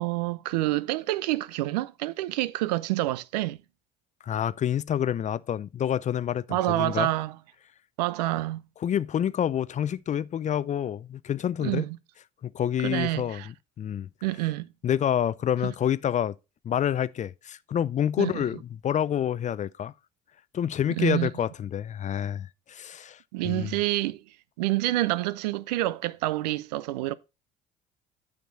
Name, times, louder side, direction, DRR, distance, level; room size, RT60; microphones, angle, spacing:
voice 1, 0.0-3.6 6.5-7.4 8.0-8.6 11.6-12.0 12.8-13.5 14.2-14.7 15.6-15.7 18.2-18.4 20.9-21.3 23.3-24.2 24.6-27.2, right 17 dB, 80° right, 0.5 m, -27 dB
voice 2, 4.2-7.1 8.8-11.8 12.4-14.1 14.8-16.3 16.6-19.9 20.5-23.7, left 9 dB, 35° left, 0.5 m, -28 dB
9.2 x 6.5 x 4.1 m
hypercardioid pair, 65°, 21 cm